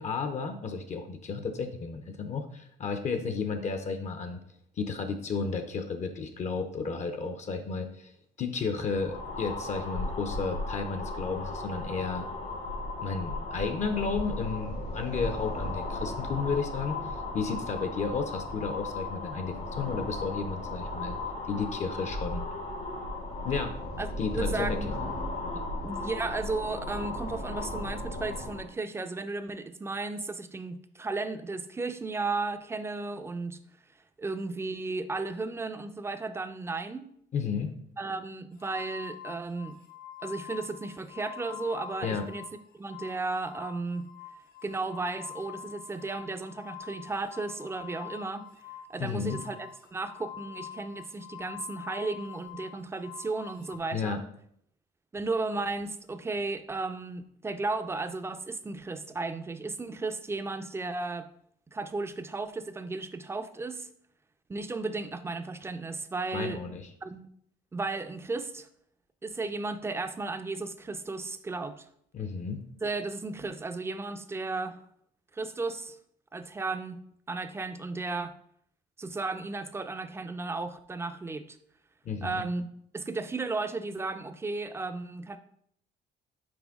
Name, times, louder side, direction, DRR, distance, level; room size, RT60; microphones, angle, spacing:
voice 1, 0.0-4.4 4.8-8.1 8.4-12.2 13.0-21.2 21.4-22.5 23.4-23.8 24.2-24.8 25.5-25.6 37.3-37.8 42.0-42.3 49.0-49.4 53.9-54.2 66.3-66.9 72.1-72.6 82.0-82.4, left 5 dB, 45° left, 7 dB, 0.7 m, -33 dB
sound 1, 8.8-28.7, left 2 dB, 85° left, 2.2 m, -36 dB
voice 2, 24.0-24.9 25.8-33.6 34.2-37.1 38.0-39.8 40.2-42.4 42.7-44.1 44.6-48.4 48.9-54.2 55.1-61.3 61.7-63.9 64.5-66.6 67.0-67.2 67.7-68.7 69.2-71.9 72.8-74.8 75.3-76.0 76.3-77.0 77.3-78.4 79.0-81.6 82.2-82.7 82.9-85.4, right 3 dB, 15° right, 9 dB, 0.4 m, -34 dB
sound 2, 38.6-42.6 42.8-53.8, left 10 dB, 60° left, 1.0 m, -45 dB
6.2 x 4.4 x 3.5 m, 0.69 s
cardioid pair, 110°, 17 cm